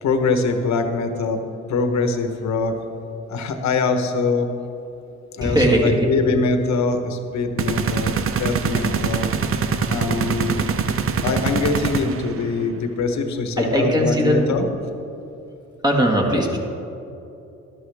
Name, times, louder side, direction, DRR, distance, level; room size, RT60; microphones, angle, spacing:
voice 1, 0.0-1.4 1.7-2.7 3.3-4.5 5.3-9.3 9.9-10.6 11.2-14.7, left 4 dB, 65° left, 6 dB, 1.2 m, -23 dB
voice 2, 5.4-6.1 13.6-14.4 15.8-16.6, equal, 15° right, 0 dB, 1.8 m, -19 dB
sound 1, 7.6-12.4, right 6 dB, 45° right, 0.7 m, -23 dB
12.5 x 11.5 x 3.5 m, 2.8 s
cardioid pair, 90°, 30 cm